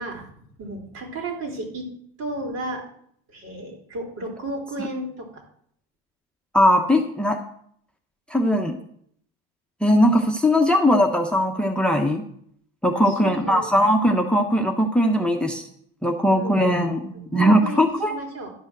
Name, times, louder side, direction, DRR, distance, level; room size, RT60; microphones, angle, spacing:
voice 1, 0.0-1.9 2.2-2.9 3.3-5.4 13.1-13.7 16.3-16.7 17.3-18.5, right 2 dB, 60° right, 1 dB, 3.8 m, -33 dB
voice 2, 6.5-7.4 8.3-8.8 9.8-12.2 12.8-15.7 16.0-18.2, equal, 5° left, 4 dB, 1.1 m, -20 dB
11.5 x 5.4 x 6.2 m, 0.66 s
supercardioid pair, 95°, 30 cm